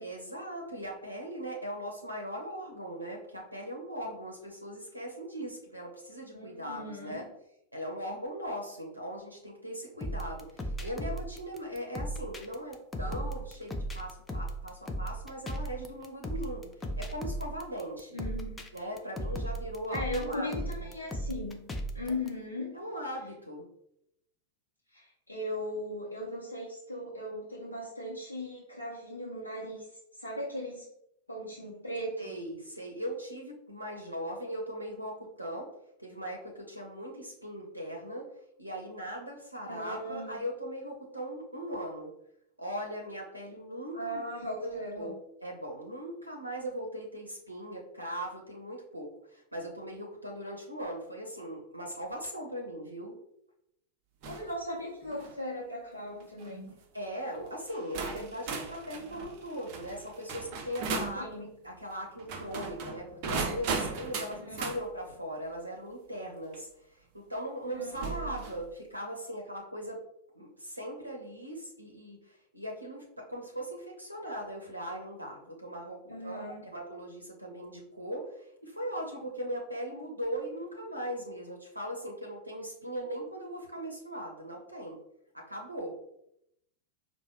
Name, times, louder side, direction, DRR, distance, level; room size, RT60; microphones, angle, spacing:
voice 1, 0.0-7.3 7.7-18.2 18.7-20.9 22.1-22.2 22.7-23.7 32.2-35.7 36.0-38.3 38.6-42.1 42.6-44.3 44.6-45.1 45.4-53.1 56.9-70.0 70.3-85.0 85.3-85.9, equal, 85° right, 0 dB, 0.6 m, -39 dB
voice 2, 6.3-7.2 18.1-18.6 19.9-21.6 21.9-22.8 24.9-29.8 30.2-30.8 31.3-32.3 39.7-40.4 43.9-45.1 54.3-56.8 61.2-61.5 64.4-64.7 67.7-68.3 76.1-76.7, left 1 dB, 85° left, -4 dB, 0.6 m, -38 dB
sound 1, 10.0-22.3, right 1 dB, 10° left, 0.5 m, -37 dB
sound 2, 54.2-54.5 55.0-55.4 56.2-56.5 57.3-57.4 57.9-61.2 62.2-64.8 66.5-66.6 67.9-68.6, right 4 dB, 45° right, 0.6 m, -37 dB
4.7 x 2.1 x 2.9 m, 0.77 s
figure-of-eight pair, 90°, 0 cm